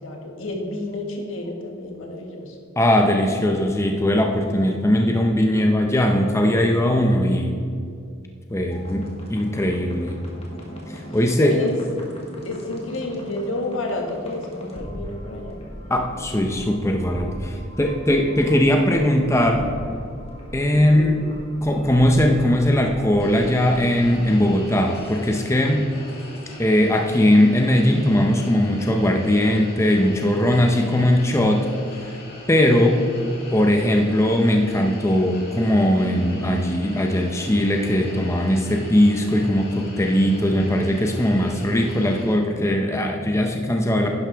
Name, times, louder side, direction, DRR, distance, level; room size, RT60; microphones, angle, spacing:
voice 1, 0.0-2.6 11.4-11.8 12.4-15.6 20.9-21.2 32.7-33.1, left 2 dB, 70° left, 2 dB, 1.6 m, -30 dB
voice 2, 2.8-7.6 8.5-10.2 10.9-11.5 15.9-19.6 20.5-21.1 21.6-25.8 26.6-31.7 32.0-32.2 32.5-33.0 33.5-44.1, left 1 dB, 15° left, 2 dB, 0.6 m, -19 dB
sound 1, 8.7-24.3 24.7-25.4 26.1-26.5, equal, 30° left, 1.8 m, -38 dB
sound 2, 23.2-42.3, left 1 dB, 50° left, 2.2 m, -41 dB
11.0 x 10.5 x 3.4 m, 2.3 s
head